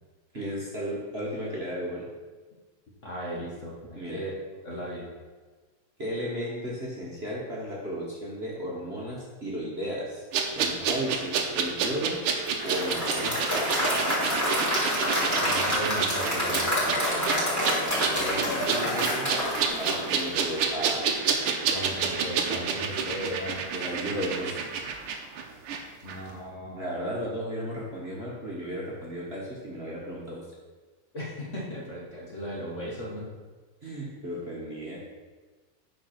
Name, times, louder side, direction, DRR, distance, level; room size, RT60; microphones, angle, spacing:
voice 1, 0.3-2.1 3.9-4.2 6.0-10.2 10.5-12.2 12.6-13.5 18.1-19.3 19.8-21.1 23.7-24.6 26.8-30.4 33.8-35.0, equal, 30° right, -5 dB, 1.5 m, -34 dB
voice 2, 3.0-4.3 4.6-5.1 10.6-10.9 15.3-16.8 21.7-23.6 26.0-27.0 31.1-33.3, equal, 35° left, -5 dB, 1.7 m, -37 dB
sound 1, 10.3-25.8 26.1-26.2, right 6 dB, 90° right, 1.8 m, -29 dB
Applause / Crowd, 12.5-20.6, equal, 10° left, 2.6 m, -28 dB
8.8 x 4.7 x 5.9 m, 1.4 s
omnidirectional pair, 2.4 m